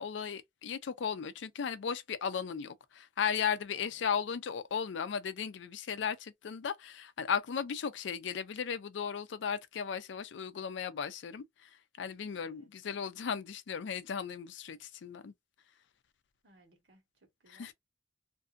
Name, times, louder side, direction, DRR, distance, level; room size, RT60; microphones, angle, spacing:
voice 1, 0.0-11.7 12.0-15.3 17.5-17.7, left 7 dB, 75° left, 0.4 m, -36 dB
voice 2, 3.7-4.0 12.4-12.7 16.4-17.7, right 2 dB, 75° right, 1.2 m, -63 dB
2.6 x 2.5 x 2.4 m
head